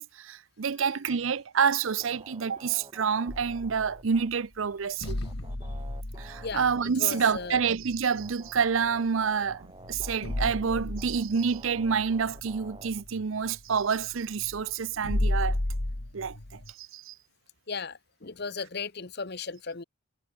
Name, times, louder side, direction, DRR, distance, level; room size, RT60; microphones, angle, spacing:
voice 1, 0.0-5.2 6.2-15.6 16.1-17.1, right 6 dB, 70° right, 0.6 m, -28 dB
sound 1, 2.0-4.3 5.0-7.7 8.0-13.0, right 2 dB, 20° right, 3.6 m, -50 dB
sound 2, 3.3-4.2 5.0-9.0 9.4-9.6 9.8-16.7, left 1 dB, 80° left, 2.1 m, -34 dB
voice 2, 7.0-7.6 17.7-19.8, left 4 dB, 50° left, 1.1 m, -36 dB
head